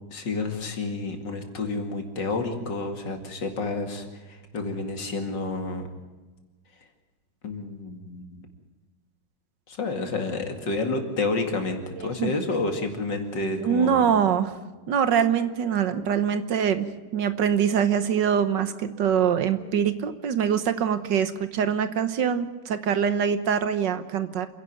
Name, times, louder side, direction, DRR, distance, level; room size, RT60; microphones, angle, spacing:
voice 1, 0.1-5.8 7.4-8.5 9.7-14.0, left 3 dB, 65° left, 5 dB, 3.0 m, -30 dB
voice 2, 12.0-12.3 13.6-14.5 14.9-24.5, right 8 dB, 65° right, 11 dB, 1.7 m, -24 dB
28.0 x 11.0 x 9.2 m, 1.2 s
omnidirectional pair, 2.1 m